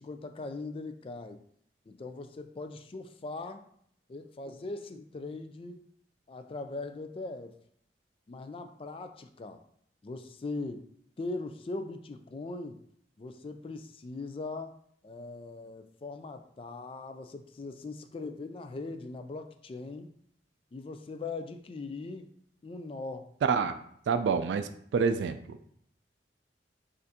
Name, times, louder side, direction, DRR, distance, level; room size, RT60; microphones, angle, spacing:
voice 1, 0.0-1.4 1.9-3.6 4.1-5.8 6.3-7.6 8.3-9.6 10.0-10.9 11.2-12.8 13.2-14.8 15.0-20.1 20.7-22.3 22.6-23.3, left 3 dB, 30° left, 8 dB, 0.3 m, -40 dB
voice 2, 23.4-23.8 24.1-25.6, right 5 dB, 85° right, 10 dB, 0.3 m, -28 dB
6.4 x 2.5 x 2.8 m, 0.67 s
head